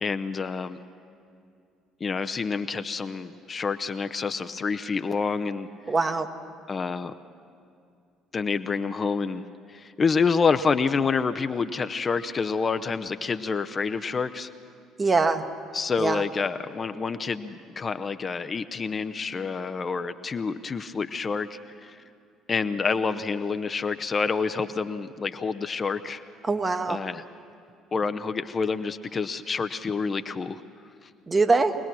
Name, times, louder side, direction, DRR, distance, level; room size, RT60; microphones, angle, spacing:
voice 1, 0.0-0.8 2.0-5.7 6.7-7.1 8.3-9.4 9.7-14.5 15.7-22.0 22.5-26.2 26.9-27.2 27.9-30.6 31.0-31.1, left 5 dB, 35° left, 10 dB, 0.6 m, -28 dB
voice 2, 5.9-6.3 15.0-15.4 16.0-16.2 26.4-27.0 31.3-31.7, right 3 dB, 25° right, 8 dB, 1.2 m, -23 dB
24.0 x 18.5 x 6.1 m, 2.4 s
figure-of-eight pair, 50°, 0 cm